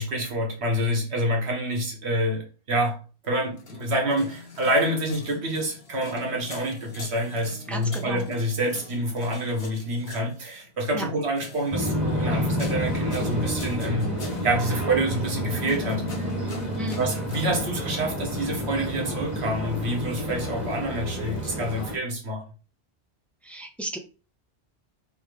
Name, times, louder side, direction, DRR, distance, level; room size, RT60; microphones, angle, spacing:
voice 1, 0.0-3.0 3.2-16.2 17.0-22.4, right 1 dB, 70° right, 1.5 m, -27 dB
sound 1, 3.4-17.5, left 3 dB, 70° left, 1.2 m, -44 dB
voice 2, 7.7-8.3 10.9-11.1 16.8-17.0 23.4-24.0, equal, ahead, 0.4 m, -33 dB
sound 2, 11.7-22.0, equal, 40° right, 1.3 m, -29 dB
3.6 x 3.1 x 4.8 m
omnidirectional pair, 1.1 m